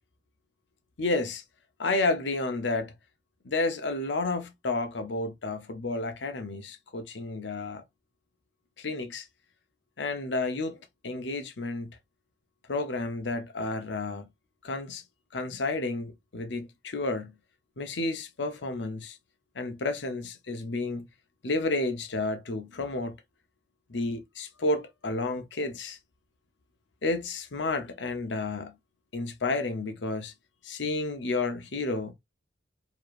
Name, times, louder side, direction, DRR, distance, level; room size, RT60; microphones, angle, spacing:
voice 1, 1.0-1.4 1.8-2.9 3.4-7.8 8.8-9.3 10.0-11.9 12.7-14.3 14.6-15.0 15.3-17.3 17.8-19.2 19.5-21.1 21.4-23.2 23.9-26.0 27.0-28.7 29.1-30.3 30.6-32.1, left 2 dB, 75° left, 0.8 m, -31 dB
4.9 x 3.0 x 2.5 m
head